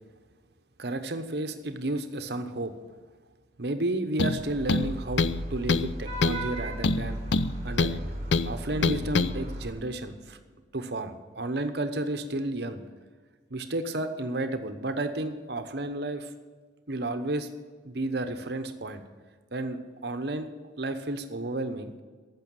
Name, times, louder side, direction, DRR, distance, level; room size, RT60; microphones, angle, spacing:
voice 1, 0.8-2.7 3.6-7.2 7.6-8.0 8.4-10.4 10.7-12.8 13.5-16.3 16.9-17.5 17.8-19.0 19.5-20.5 20.8-21.9, right 2 dB, 60° right, 9 dB, 1.0 m, -32 dB
sound 1, 4.2-4.4 4.7-5.4 5.7-5.9 6.2-6.5 6.8-8.0 8.3-8.5 8.8-9.3, left 3 dB, 75° left, 0.5 m, -25 dB
Vehicle horn car horn honking / Traffic noise roadway noise, 4.4-9.7, right 1 dB, 35° right, 2.1 m, -36 dB
14.5 x 6.2 x 9.0 m, 1.5 s
head